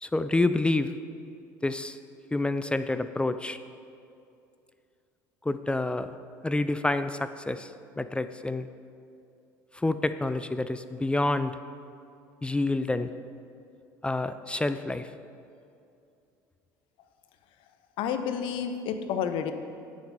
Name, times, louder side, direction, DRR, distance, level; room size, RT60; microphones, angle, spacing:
voice 1, 0.0-0.9 1.6-2.0 2.3-3.6 5.5-6.2 6.4-7.7 8.0-8.7 9.7-11.6 12.4-13.1 14.0-15.1, left 2 dB, 10° left, 11 dB, 0.4 m, -28 dB
voice 2, 18.0-19.5, left 7 dB, 65° left, 8 dB, 0.8 m, -30 dB
9.2 x 7.4 x 5.3 m, 2.6 s
supercardioid pair, 80°, 9 cm